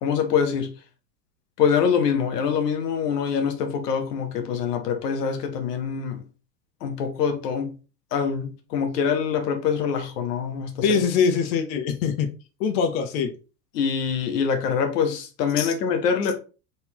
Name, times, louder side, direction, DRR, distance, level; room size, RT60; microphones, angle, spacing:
voice 1, 0.0-0.7 1.6-6.2 6.8-7.7 8.1-11.0 13.7-16.3, left 7 dB, 80° left, 1.3 m, -24 dB
voice 2, 10.8-12.3 12.6-13.3 15.6-15.7, left 6 dB, 60° left, 1.1 m, -23 dB
4.1 x 3.9 x 3.0 m
hypercardioid pair, 110°, 47 cm